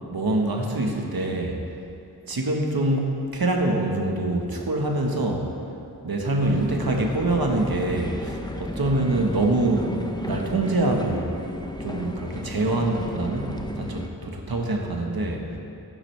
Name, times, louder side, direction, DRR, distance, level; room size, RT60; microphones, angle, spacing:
voice 1, 0.1-1.6 2.3-5.5 6.0-9.9 10.2-11.3 11.8-15.5, right 2 dB, 60° right, 1 dB, 1.5 m, -25 dB
sound 1, 6.4-14.1, left 1 dB, 10° left, 0.7 m, -34 dB
14.0 x 11.0 x 3.4 m, 2.7 s
wide cardioid pair, 60°, 40 cm